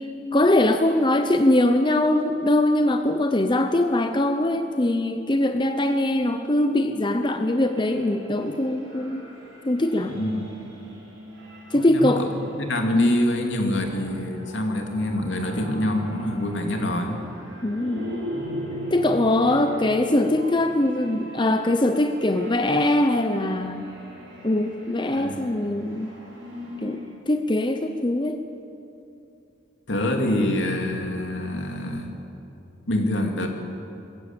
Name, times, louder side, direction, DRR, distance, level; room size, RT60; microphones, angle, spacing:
voice 1, 0.3-9.3 9.7-10.2 11.7-12.3 12.9-13.2 17.6-18.3 18.9-23.8 24.4-26.1 26.8-28.4, left 1 dB, 25° left, 7 dB, 0.7 m, -22 dB
sound 1, 7.4-27.2, equal, 80° right, 5.9 m, -40 dB
voice 2, 10.1-10.5 11.7-12.3 12.6-17.2 25.1-25.4 29.9-32.2 32.9-33.5, left 1 dB, 75° left, 3 dB, 2.7 m, -26 dB
21.5 x 15.0 x 8.9 m, 2.8 s
head